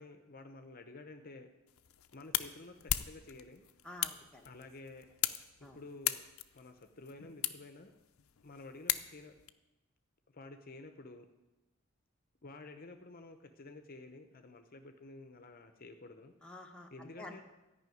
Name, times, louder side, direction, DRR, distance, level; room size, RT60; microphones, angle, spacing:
voice 1, 0.0-1.5 2.1-3.6 4.4-5.1 5.6-6.2 6.5-7.9 8.4-9.3 10.3-11.3 12.4-16.3 16.9-17.4, left 2 dB, 45° left, 7 dB, 0.8 m, -51 dB
sound 1, 1.7-9.5, left 13 dB, 80° left, 0.5 m, -39 dB
voice 2, 3.8-4.4 5.6-5.8 16.4-17.4, left 1 dB, 5° left, 0 dB, 1.1 m, -49 dB
12.5 x 5.6 x 9.2 m, 1.0 s
head